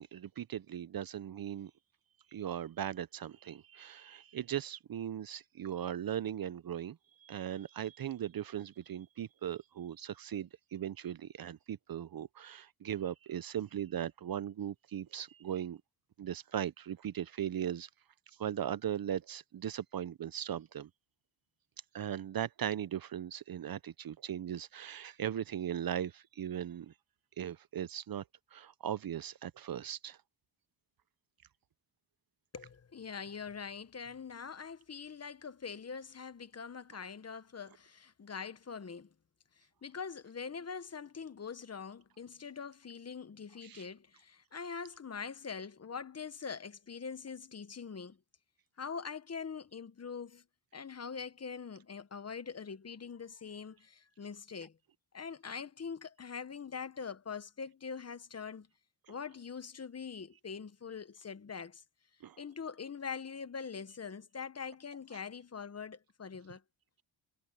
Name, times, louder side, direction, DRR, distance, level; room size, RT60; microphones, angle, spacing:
voice 1, 0.0-1.7 2.3-15.8 16.2-17.9 18.4-20.9 21.9-26.9 27.4-28.2 28.5-30.2 43.6-43.8 62.2-62.4, right 10 dB, 50° right, 0.7 m, -38 dB
voice 2, 32.5-39.1 39.6-48.2 48.8-50.4 50.7-54.8 55.1-58.7 59.1-61.8 62.4-66.6, left 6 dB, 35° left, 1.0 m, -43 dB
cardioid pair, 85°, 45 cm